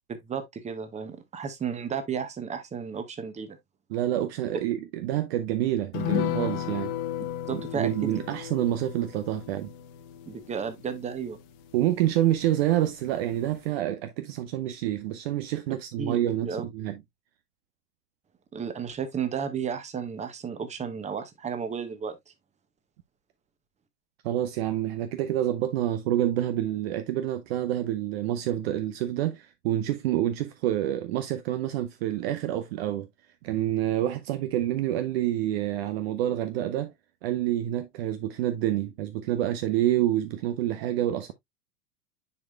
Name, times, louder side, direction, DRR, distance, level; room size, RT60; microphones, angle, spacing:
voice 1, 0.3-3.6 7.5-8.1 10.3-11.4 16.0-16.6 18.5-22.2, right 7 dB, 15° right, 1.1 m, -33 dB
voice 2, 3.9-6.9 7.5-9.7 11.7-17.0 24.2-33.1 33.4-36.9 37.2-41.3, right 13 dB, 45° right, 0.7 m, -27 dB
sound 1, 5.9-12.7 13.0-13.1 13.5-13.6, left 12 dB, 40° left, 1.3 m, -35 dB
9.8 x 4.8 x 2.2 m
figure-of-eight pair, 90°, 45 cm